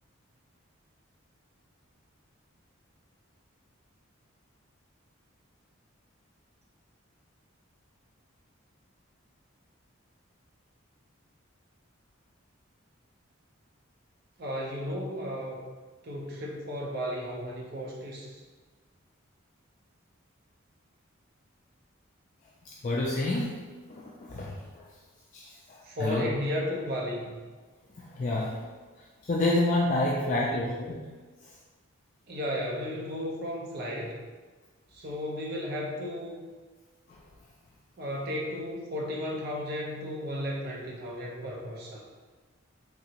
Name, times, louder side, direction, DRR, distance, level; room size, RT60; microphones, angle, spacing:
voice 1, 14.4-15.6 16.0-18.4 25.8-27.4 30.2-30.4 32.3-34.2 34.9-36.5 38.0-42.0, equal, 50° right, -2 dB, 0.6 m, -34 dB
voice 2, 22.8-23.5 23.9-24.9 25.3-26.3 28.0-28.6 29.2-31.0 37.1-37.2, left 2 dB, 35° left, -4 dB, 0.3 m, -29 dB
3.3 x 2.8 x 2.8 m, 1.4 s
head